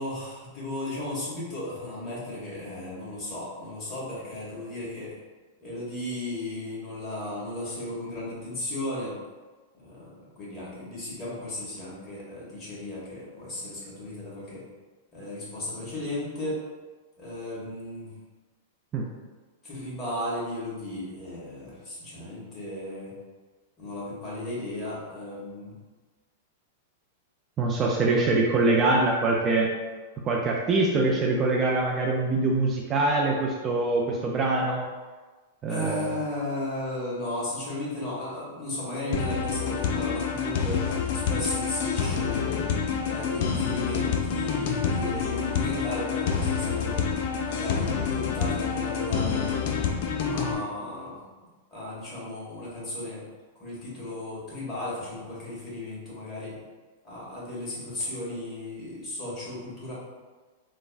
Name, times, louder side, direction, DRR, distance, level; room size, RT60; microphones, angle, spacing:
voice 1, 0.0-5.1 5.6-9.2 9.7-14.6 15.1-16.6 17.2-18.1 19.6-23.1 23.8-25.7 35.7-42.7 43.0-49.7 50.3-51.2 51.7-53.2 53.5-56.6 57.0-59.9, left 1 dB, 25° left, -7 dB, 1.4 m, -35 dB
voice 2, 27.6-29.7 30.3-34.8 35.6-36.0, right 2 dB, 30° right, -1 dB, 0.3 m, -24 dB
sound 1, 39.1-50.5, left 6 dB, 60° left, 0.3 m, -27 dB
3.2 x 2.0 x 2.4 m, 1.3 s
hypercardioid pair, 110°, 0 cm